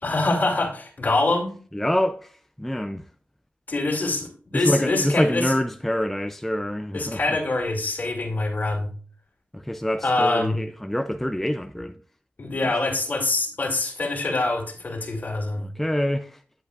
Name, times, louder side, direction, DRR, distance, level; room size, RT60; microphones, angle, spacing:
voice 1, 0.0-1.5 3.7-5.5 6.9-8.9 10.0-10.6 12.4-15.7, left 2 dB, 45° left, 2.7 m, -25 dB
voice 2, 1.7-2.3 2.6-3.0 4.5-7.2 9.5-11.9 15.6-16.4, equal, 5° left, 0.4 m, -26 dB
10.5 x 8.1 x 2.4 m
wide cardioid pair, 105°, 4 cm